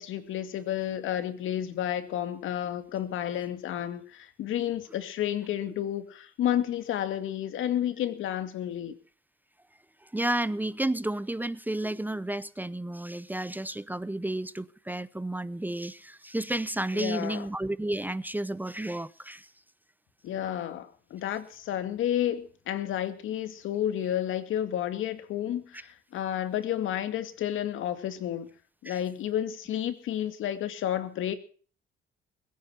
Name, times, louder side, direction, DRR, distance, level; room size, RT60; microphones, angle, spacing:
voice 1, 0.0-8.9 16.9-17.5 20.2-28.5 28.8-31.3, left 11 dB, 80° left, 2.3 m, -31 dB
voice 2, 10.1-19.5 28.9-29.0, right 1 dB, 10° right, 0.7 m, -32 dB
21.5 x 9.5 x 5.7 m
cardioid pair, 90°, 20 cm